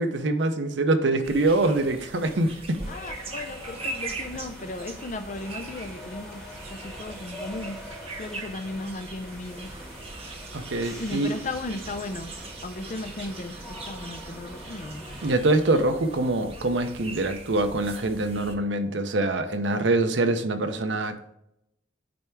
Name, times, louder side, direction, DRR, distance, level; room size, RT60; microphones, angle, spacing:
voice 1, 0.0-2.8 10.5-11.3 15.2-21.4, right 2 dB, 75° right, 0.7 m, -24 dB
sound 1, 1.2-18.5, right 2 dB, 30° right, 0.9 m, -41 dB
sound 2, 2.8-15.3, left 1 dB, ahead, 2.0 m, -44 dB
voice 2, 2.9-6.4 6.7-7.8 8.2-9.7 11.0-12.3 12.6-15.0, left 2 dB, 40° left, 0.5 m, -36 dB
8.9 x 3.4 x 4.6 m
head